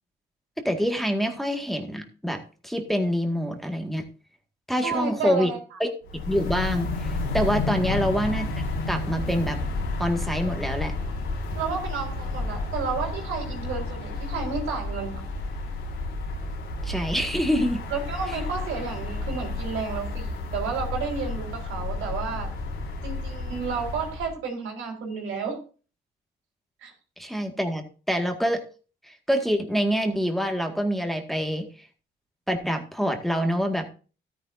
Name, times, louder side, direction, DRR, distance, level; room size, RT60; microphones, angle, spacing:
voice 1, 0.6-4.0 4.7-5.5 5.8-5.9 6.3-8.5 8.9-9.6 10.0-10.9 16.8-17.8 27.2-28.6 29.0-31.9 32.5-33.9, equal, ahead, 3 dB, 2.0 m, -26 dB
voice 2, 4.8-5.8 7.8-8.0 11.5-15.2 17.9-22.5 23.0-25.6 26.8-26.9, right 5 dB, 85° right, 2 dB, 4.4 m, -31 dB
sound 1, 6.0-24.3, left 2 dB, 85° left, 4.2 m, -31 dB
13.0 x 10.0 x 2.7 m, 0.36 s
cardioid pair, 90°, 20 cm